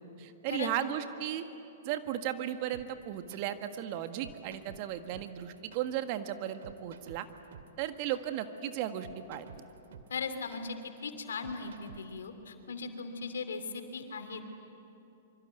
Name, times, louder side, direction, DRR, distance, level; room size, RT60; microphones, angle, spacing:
voice 1, 0.2-1.4 1.8-7.3 7.8-9.6, right 11 dB, 45° right, 8 dB, 1.7 m, -35 dB
sound 1, 2.7-12.3, right 7 dB, 65° right, 2.2 m, -52 dB
voice 2, 10.1-10.8 11.0-14.4, left 5 dB, 75° left, 8 dB, 2.9 m, -38 dB
25.0 x 25.0 x 9.3 m, 2.8 s
hypercardioid pair, 115°, 0 cm